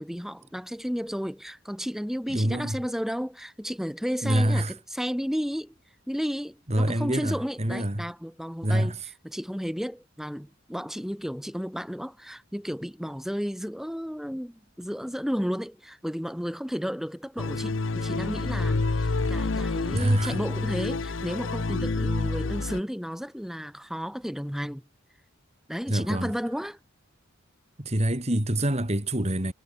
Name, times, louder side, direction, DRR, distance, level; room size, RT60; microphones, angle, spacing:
voice 1, 0.0-5.7 6.1-24.8 25.7-26.8, equal, ahead, 2.9 m, -33 dB
voice 2, 2.3-2.8 4.2-4.7 6.7-8.0 8.6-9.0 19.9-20.4 25.9-26.3 27.8-29.5, right 1 dB, 30° right, 2.8 m, -25 dB
sound 1, 17.4-22.8, left 3 dB, 60° left, 0.8 m, -28 dB
head